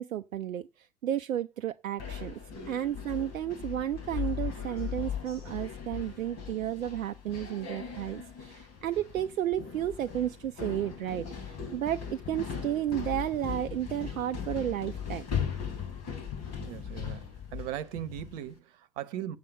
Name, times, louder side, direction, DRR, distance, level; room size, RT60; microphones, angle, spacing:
voice 1, 0.0-2.4 2.7-15.2, right 11 dB, 85° right, 0.5 m, -33 dB
sound 1, 2.0-18.5, left 7 dB, 40° left, 3.7 m, -38 dB
voice 2, 16.6-19.4, right 11 dB, 65° right, 1.1 m, -39 dB
7.6 x 7.6 x 7.5 m
figure-of-eight pair, 75°, 39 cm